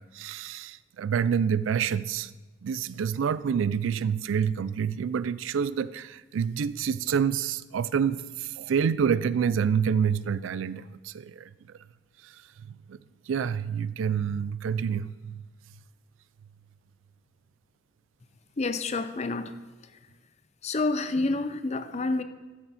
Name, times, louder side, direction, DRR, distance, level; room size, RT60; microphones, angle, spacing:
voice 1, 0.0-2.3 2.6-11.5 12.2-12.4 12.7-13.0 13.3-15.5, right 7 dB, 90° right, 0.3 m, -28 dB
voice 2, 18.6-19.5 20.6-22.2, left 3 dB, 35° left, 0.5 m, -28 dB
13.5 x 6.8 x 4.2 m
head